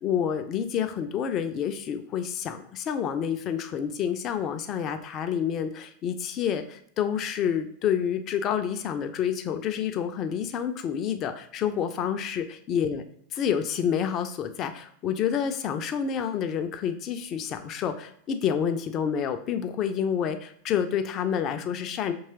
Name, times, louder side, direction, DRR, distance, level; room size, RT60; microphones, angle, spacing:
voice 1, 0.0-13.0 13.3-22.1, left 8 dB, 35° left, 8 dB, 0.4 m, -28 dB
4.6 x 2.9 x 2.8 m, 0.65 s
figure-of-eight pair, 90°, 0 cm